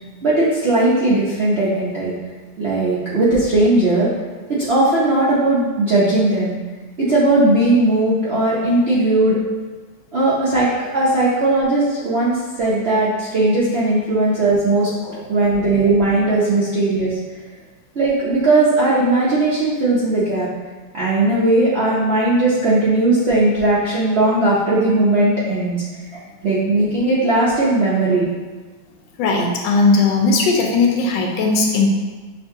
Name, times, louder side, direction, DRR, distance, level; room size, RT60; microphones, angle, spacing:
voice 1, 0.2-2.1 2.6-4.1 4.6-6.5 7.1-9.4 10.1-10.7 10.9-14.9 15.3-17.2 17.9-20.5 20.9-25.8 26.1-28.2, right 2 dB, 60° right, -9 dB, 0.7 m, -17 dB
voice 2, 29.2-31.9, left 3 dB, 80° left, 0 dB, 1.3 m, -17 dB
6.2 x 2.5 x 2.7 m, 1.3 s
omnidirectional pair, 2.0 m